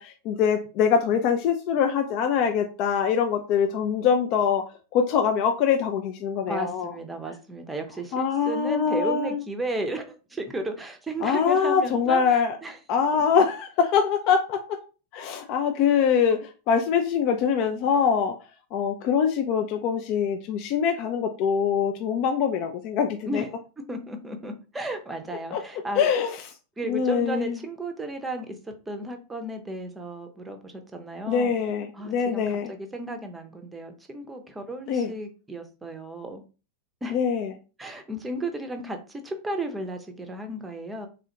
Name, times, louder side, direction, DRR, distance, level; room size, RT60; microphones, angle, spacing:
voice 1, 0.0-4.6 4.9-6.9 8.1-9.4 11.2-12.5 12.9-14.6 15.1-16.4 16.7-18.3 18.7-23.4 25.5-25.6 26.0-26.4 26.9-27.6 31.3-32.7 34.9-35.1 37.1-37.5, left 7 dB, 40° left, 5 dB, 0.4 m, -23 dB
voice 2, 6.5-12.8 23.3-23.5 23.9-26.0 26.8-28.6 28.9-31.5 31.9-36.4 37.0-37.2 37.8-41.1, right 1 dB, 10° right, 6 dB, 0.6 m, -34 dB
3.6 x 2.4 x 2.8 m, 0.33 s
figure-of-eight pair, 90°, 0 cm